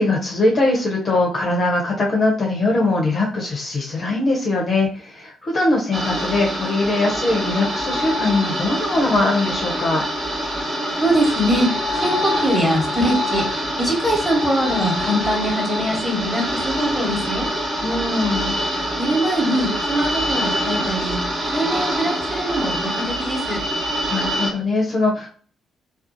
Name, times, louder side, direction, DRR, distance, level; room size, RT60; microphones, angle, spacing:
voice 1, 0.0-10.0 17.8-18.6 24.1-25.3, left 2 dB, 40° left, -1 dB, 0.6 m, -21 dB
sound 1, 5.9-24.5, equal, 35° right, 0.9 m, -25 dB
voice 2, 10.9-13.4 13.8-17.5 19.0-21.2 21.5-23.6, right 1 dB, ahead, 0 dB, 1.1 m, -22 dB
2.4 x 2.3 x 2.5 m, 0.43 s
figure-of-eight pair, 40°, 0 cm